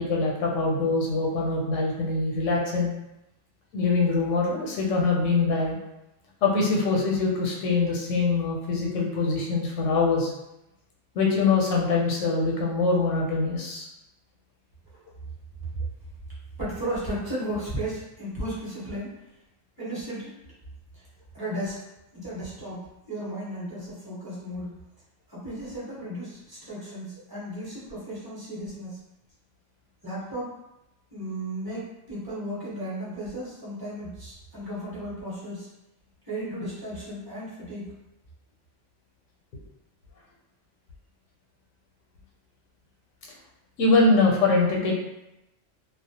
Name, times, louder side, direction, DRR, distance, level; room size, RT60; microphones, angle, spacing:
voice 1, 0.0-2.9 3.7-5.8 6.4-10.3 11.1-13.9 43.8-44.9, left 3 dB, 85° left, -1 dB, 1.0 m, -23 dB
voice 2, 16.6-19.2 19.8-20.3 20.9-21.0 21.3-21.8 22.1-24.7 25.3-29.0 30.0-30.5 31.1-35.7 36.3-37.9, right 1 dB, 20° right, -8 dB, 0.9 m, -34 dB
2.3 x 2.0 x 2.7 m, 0.89 s
omnidirectional pair, 1.2 m